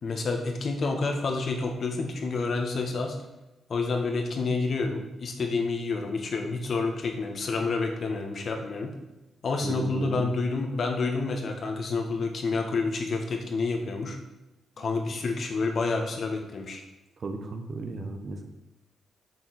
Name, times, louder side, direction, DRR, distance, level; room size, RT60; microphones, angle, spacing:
voice 1, 0.0-3.2 3.7-8.9 9.4-14.2 14.8-16.8, left 3 dB, 60° left, 3 dB, 1.7 m, -29 dB
voice 2, 9.6-10.3 17.2-18.5, right 3 dB, 55° right, 5 dB, 1.4 m, -35 dB
7.2 x 6.3 x 6.2 m, 0.97 s
cardioid pair, 60°, 0 cm